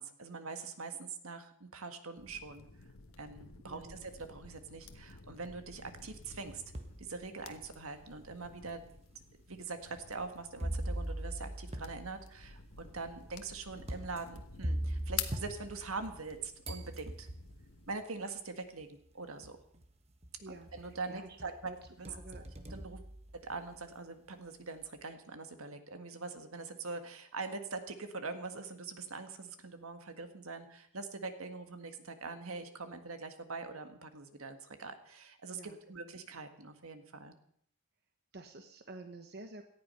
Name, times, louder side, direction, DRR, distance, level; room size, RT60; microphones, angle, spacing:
voice 1, 0.0-2.6 3.2-6.6 7.0-8.8 9.5-17.3 17.9-19.6 20.5-21.7 22.0-22.1 22.4-23.0 23.3-37.3, right 4 dB, 75° right, 8 dB, 1.8 m, -43 dB
sound 1, 2.2-18.0, left 8 dB, 75° left, 1.3 m, -49 dB
voice 2, 3.6-4.0 20.4-21.8 22.1-22.4 35.5-36.2 38.3-39.6, right 2 dB, 50° right, 7 dB, 1.0 m, -50 dB
sound 2, 6.1-7.0 7.6-7.7 8.6-8.7 10.6-16.3 16.6-17.7 18.8-18.9 19.4-19.9 20.2-21.0 21.4-23.8, right 1 dB, 30° right, 1.3 m, -41 dB
18.0 x 13.0 x 5.6 m, 0.66 s
head